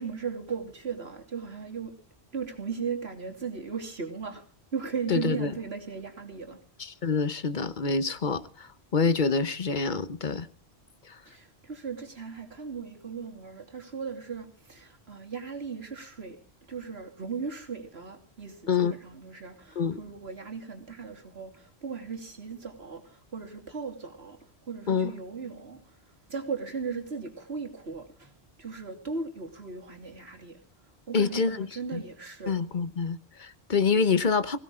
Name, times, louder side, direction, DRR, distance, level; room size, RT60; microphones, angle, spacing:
voice 1, 0.0-1.9 2.3-4.4 4.7-6.6 11.3-16.4 16.7-24.4 24.7-25.8 26.3-28.3 28.6-30.6 31.1-32.6, right 5 dB, 70° right, 3.2 m, -37 dB
voice 2, 5.1-5.5 6.8-10.5 11.1-11.2 18.7-18.9 19.8-20.0 24.9-25.1 31.1-32.0 32.5-34.6, left 5 dB, 50° left, 1.1 m, -27 dB
21.5 x 16.5 x 3.7 m
omnidirectional pair, 1.1 m